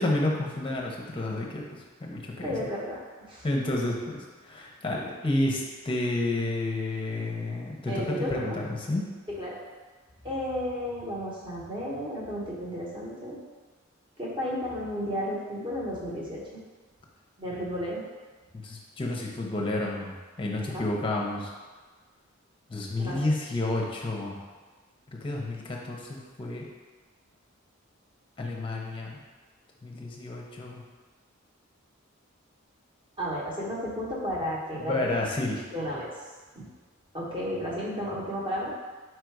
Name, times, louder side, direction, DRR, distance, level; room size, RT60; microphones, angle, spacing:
voice 1, 0.0-1.6 2.0-2.5 3.4-9.0 18.6-21.5 22.7-24.4 25.2-26.6 28.4-29.2 29.8-30.8 34.8-35.6, left 2 dB, 25° left, -1 dB, 0.7 m, -30 dB
voice 2, 2.4-3.0 3.3-3.5 7.9-8.6 9.3-9.6 10.2-13.4 14.2-16.6 17.4-18.0 20.7-20.9 23.0-23.2 33.2-35.1 35.7-36.1 36.5-36.6 37.1-38.7, equal, 25° right, -6 dB, 1.0 m, -33 dB
4.5 x 2.5 x 4.6 m, 1.4 s
head